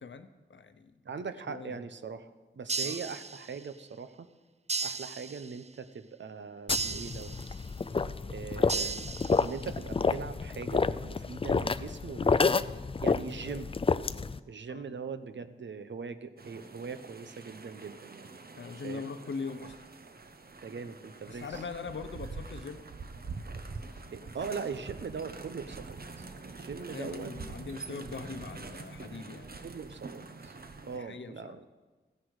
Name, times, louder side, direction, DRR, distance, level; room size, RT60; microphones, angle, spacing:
voice 1, 0.0-1.0 1.5-1.8 2.8-3.1 14.7-15.0 18.6-19.8 21.3-22.9 26.9-29.5 30.9-31.6, left 4 dB, 85° left, 10 dB, 0.8 m, -41 dB
voice 2, 1.0-4.3 4.8-7.4 8.3-9.1 9.4-12.4 13.0-13.7 14.5-18.3 18.8-19.1 20.6-21.6 24.1-27.3 29.6-30.6 30.9-31.7, right 5 dB, 80° right, 11 dB, 0.7 m, -41 dB
sound 1, 2.7-3.8 4.7-5.7 6.7-7.7 8.7-9.7, right 4 dB, 35° right, 0.5 m, -36 dB
sound 2, 6.7-14.4, left 4 dB, 30° left, 0.4 m, -29 dB
sound 3, 16.4-31.0, right 3 dB, 55° right, 1.0 m, -45 dB
15.0 x 10.0 x 4.8 m, 1.3 s
cardioid pair, 55°, 19 cm